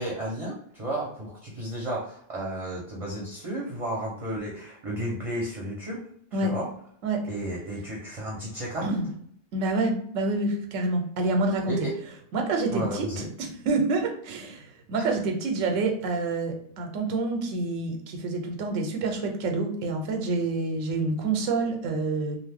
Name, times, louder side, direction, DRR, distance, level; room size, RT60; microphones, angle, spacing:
voice 1, 0.0-6.0 6.3-6.7 7.3-9.0 11.7-11.9 12.7-13.3 15.0-15.1, right 1 dB, 35° right, -4 dB, 0.6 m, -33 dB
voice 2, 9.5-11.8 12.3-13.1 13.4-22.4, right 3 dB, 90° right, 3 dB, 1.0 m, -27 dB
2.6 x 2.3 x 3.4 m, 0.64 s
omnidirectional pair, 1.3 m